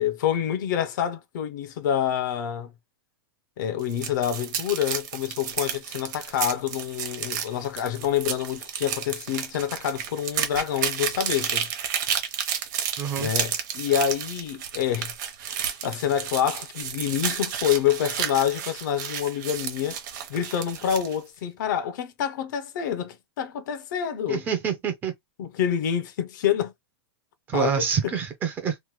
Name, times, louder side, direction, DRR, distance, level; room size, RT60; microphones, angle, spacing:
voice 1, 0.0-2.7 3.6-11.7 13.2-15.1 15.5-20.0 20.3-24.4 25.4-26.7 27.5-28.1, left 9 dB, 50° left, 0.5 m, -27 dB
sound 1, 3.8-21.2, right 9 dB, 50° right, 0.8 m, -31 dB
voice 2, 13.0-13.3 24.3-25.1 27.5-28.8, right 7 dB, 15° right, 0.4 m, -26 dB
3.0 x 2.1 x 3.0 m
supercardioid pair, 170°, 13 cm